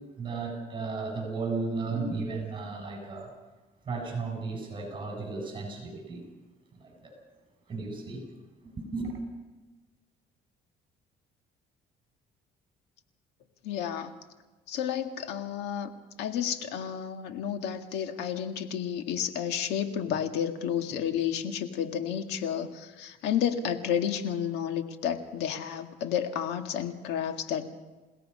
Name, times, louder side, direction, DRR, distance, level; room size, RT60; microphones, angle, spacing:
voice 1, 0.2-3.3 3.9-6.2 6.8-7.1 7.7-8.2 8.8-9.1, right 3 dB, 30° right, 1 dB, 7.3 m, -34 dB
voice 2, 13.6-14.1 14.7-15.9 16.2-27.7, left 9 dB, 90° left, 6 dB, 1.9 m, -31 dB
28.5 x 17.0 x 5.6 m, 1.2 s
cardioid pair, 110°, 17 cm